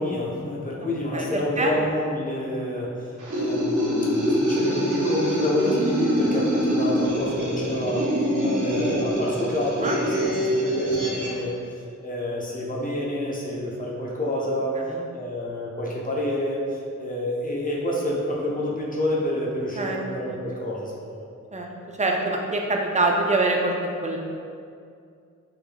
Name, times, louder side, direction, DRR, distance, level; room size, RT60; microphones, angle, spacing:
voice 1, 0.0-3.1 3.3-8.1 8.4-11.5 12.0-14.8 15.1-21.3, left 1 dB, 25° left, -4 dB, 0.7 m, -28 dB
voice 2, 1.1-1.7 9.8-10.0 14.9-15.0 19.8-20.0 20.3-20.4 21.5-21.7 22.0-23.7 24.0-24.2, right 2 dB, 25° right, 0 dB, 0.4 m, -24 dB
sound 1, 3.2-11.4, equal, 70° right, 0.7 m, -24 dB
3.6 x 3.1 x 2.2 m, 2.4 s
wide cardioid pair, 45°, 31 cm